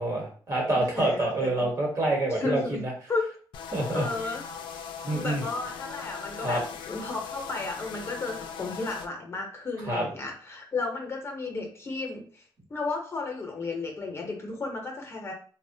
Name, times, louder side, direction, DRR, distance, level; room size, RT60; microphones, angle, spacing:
voice 1, 0.0-2.9 3.7-4.0 5.0-5.4 6.4-6.6 9.9-10.1, right 2 dB, 45° right, -1 dB, 1.1 m, -27 dB
voice 2, 0.7-1.7 2.3-3.2 3.9-4.4 5.1-12.4 12.7-15.3, left 3 dB, 35° left, 2 dB, 0.6 m, -33 dB
sound 1, 3.5-9.1, left 6 dB, 80° left, 0.3 m, -40 dB
2.9 x 2.1 x 2.6 m, 0.43 s
cardioid pair, 110°, 8 cm